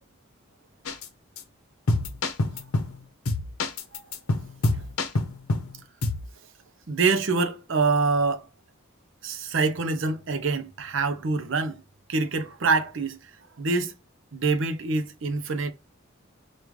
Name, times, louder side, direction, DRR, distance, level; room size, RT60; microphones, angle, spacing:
sound 1, 0.9-1.1 1.4-1.5 1.9-3.0 3.3-5.7 6.0-6.3, left 2 dB, 85° left, 0.7 m, -26 dB
voice 1, 6.9-8.4 9.2-11.8 12.1-13.3 13.6-13.9 14.3-15.7, right 4 dB, 65° right, 0.6 m, -25 dB
5.0 x 2.4 x 3.1 m
head